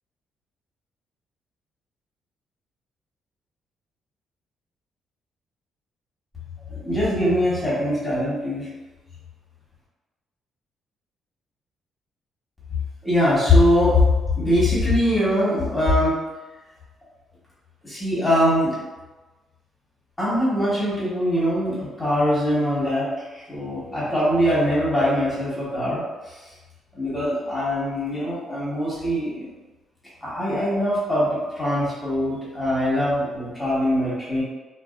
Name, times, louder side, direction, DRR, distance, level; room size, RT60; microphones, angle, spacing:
voice 1, 6.7-8.7 13.0-14.0 14.4-16.2 17.8-18.7 20.2-26.3 26.9-29.5 30.2-34.4, left 1 dB, 15° left, -9 dB, 1.1 m, -22 dB
2.3 x 2.3 x 2.4 m, 1.2 s
cardioid pair, 90°, 0 cm